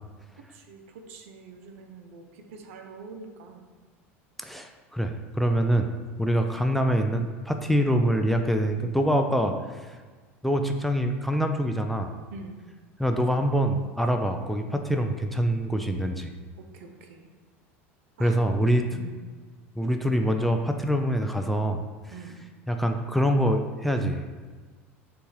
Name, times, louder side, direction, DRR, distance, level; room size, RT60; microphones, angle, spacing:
voice 1, 0.4-3.6 12.3-12.6 16.6-17.3 18.2-18.4 18.9-19.2 22.1-22.4, right 4 dB, 75° right, 4 dB, 0.6 m, -45 dB
voice 2, 4.4-5.9 6.2-9.5 10.4-12.1 13.0-16.3 18.2-18.9 19.8-21.8 22.7-24.2, equal, ahead, 5 dB, 0.4 m, -25 dB
6.8 x 2.5 x 3.1 m, 1.4 s
hypercardioid pair, 85°, 7 cm